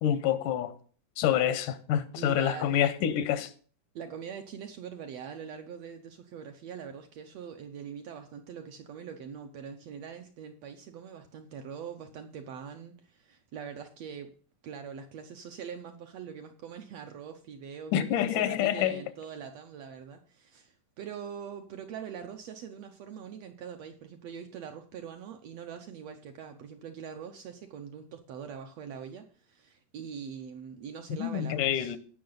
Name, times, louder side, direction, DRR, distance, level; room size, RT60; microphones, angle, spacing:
voice 1, 0.0-0.7 1.2-3.5 17.9-19.0 31.2-32.0, left 10 dB, 90° left, 2.4 m, -27 dB
voice 2, 2.1-2.8 3.9-14.3 14.6-31.9, right 7 dB, 75° right, 1.5 m, -43 dB
17.0 x 5.8 x 3.9 m
omnidirectional pair, 3.6 m